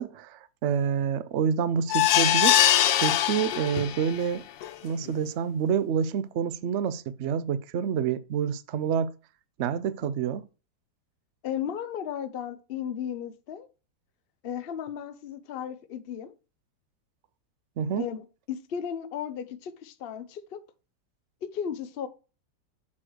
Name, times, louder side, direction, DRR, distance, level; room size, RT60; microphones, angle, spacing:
voice 1, 0.0-2.6 3.0-4.5 4.8-9.1 9.6-10.4 17.8-18.1, right 7 dB, 90° right, 0.6 m, -28 dB
sound 1, 1.9-4.2 4.6-4.7 5.1-5.2, left 12 dB, 80° left, 1.4 m, -22 dB
voice 2, 11.4-13.7 14.4-16.3 18.0-20.6 21.4-22.1, left 8 dB, 60° left, 0.6 m, -35 dB
7.5 x 4.6 x 6.2 m
omnidirectional pair, 2.1 m